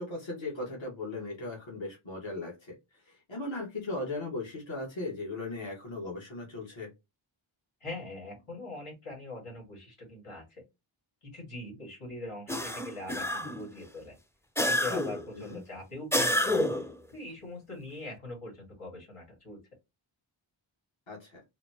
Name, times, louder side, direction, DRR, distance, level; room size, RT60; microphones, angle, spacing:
voice 1, 0.0-2.7 3.0-6.9 15.3-15.6 21.1-21.4, left 2 dB, 65° left, -3 dB, 1.5 m, -37 dB
voice 2, 7.8-10.6 11.3-14.2 14.6-16.7 17.1-19.6, left 2 dB, 90° left, -2 dB, 2.0 m, -42 dB
sound 1, 12.5-13.7 14.6-15.3 16.1-16.9, left 1 dB, 5° left, 0.4 m, -28 dB
3.9 x 2.2 x 2.8 m, 0.22 s
wide cardioid pair, 45°, 50 cm